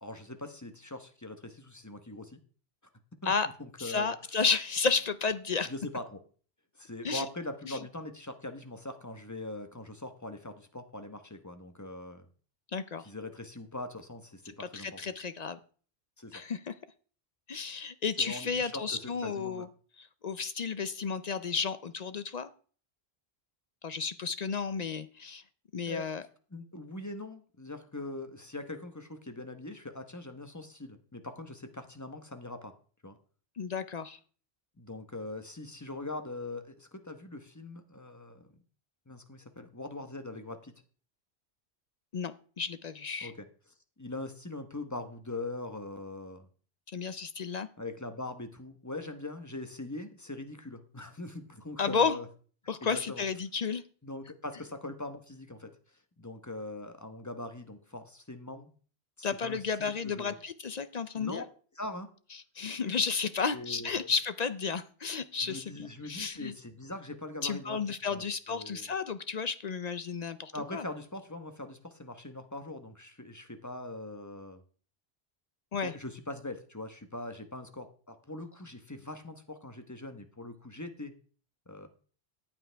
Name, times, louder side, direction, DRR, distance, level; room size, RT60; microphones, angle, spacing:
voice 1, 0.0-2.4 3.2-3.3 3.6-4.1 5.6-6.2 6.7-12.3 13.0-15.0 16.2-16.4 18.2-19.7 25.9-26.1 26.5-32.7 33.0-33.2 34.8-38.6 39.1-40.7 43.2-43.5 44.0-46.5 47.8-52.3 52.8-53.2 54.0-55.7 56.2-58.7 59.2-60.4 61.2-61.4 61.8-62.1 63.5-64.1 65.4-67.8 68.1-68.9 70.5-74.6 75.8-81.1 81.7-81.9, left 2 dB, 15° left, 7 dB, 1.0 m, -42 dB
voice 2, 3.8-5.7 7.0-7.3 7.6-7.8 12.7-13.0 14.6-15.6 16.3-16.7 17.5-19.7 20.0-22.5 23.8-25.4 25.7-26.2 33.6-34.2 42.1-43.3 46.9-47.7 51.8-52.2 52.7-53.8 59.2-61.4 62.6-66.5 67.4-70.8 75.7-75.9, left 5 dB, 50° left, 13 dB, 0.6 m, -32 dB
14.0 x 8.8 x 3.4 m, 0.42 s
omnidirectional pair, 1.1 m